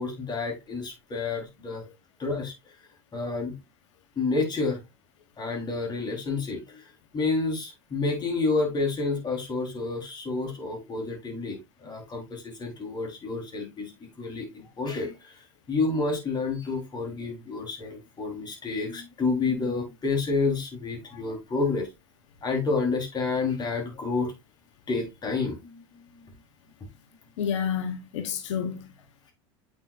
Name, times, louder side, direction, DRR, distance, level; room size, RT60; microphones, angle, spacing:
voice 1, 0.0-1.8 2.2-2.5 3.1-3.5 4.2-4.8 5.4-6.8 7.1-15.3 15.7-21.9 22.4-24.3 24.9-25.8, left 3 dB, 30° left, 4.1 m, -29 dB
voice 2, 27.4-28.9, left 7 dB, 85° left, 1.1 m, -30 dB
8.5 x 6.4 x 2.6 m
supercardioid pair, 105°, 15 cm